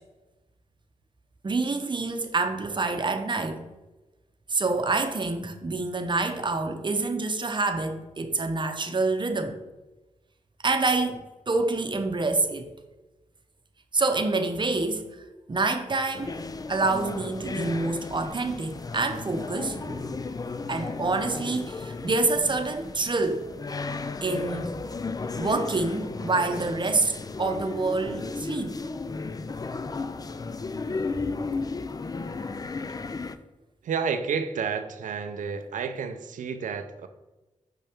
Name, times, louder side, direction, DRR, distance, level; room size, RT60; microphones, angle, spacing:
voice 1, 1.4-3.6 4.5-9.6 10.6-12.7 13.9-15.0 15.5-16.4 16.7-20.1 20.7-23.5 24.2-24.7 25.4-28.8, right 3 dB, 35° right, 6 dB, 0.8 m, -27 dB
sound 1, 16.1-33.4, left 4 dB, 30° left, 0.4 m, -34 dB
voice 2, 33.8-37.1, right 6 dB, 90° right, 9 dB, 0.5 m, -30 dB
5.5 x 5.4 x 3.5 m, 1.1 s
cardioid pair, 60°, 13 cm